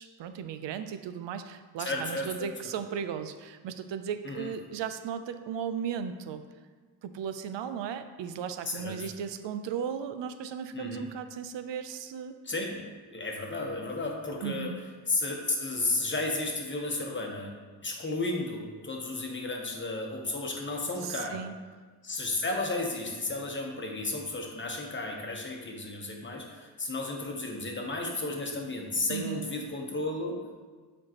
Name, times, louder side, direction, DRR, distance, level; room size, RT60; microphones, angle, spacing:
voice 1, 0.0-6.4 7.0-12.4 14.4-14.8 21.0-21.5 29.1-29.5, right 7 dB, 85° right, 9 dB, 0.5 m, -36 dB
voice 2, 1.8-2.5 4.2-4.5 8.7-9.1 10.7-11.1 12.4-14.7 15.1-17.5 17.8-21.4 22.0-30.4, left 2 dB, 25° left, 1 dB, 0.9 m, -33 dB
7.4 x 4.5 x 2.9 m, 1.5 s
wide cardioid pair, 115°, 43 cm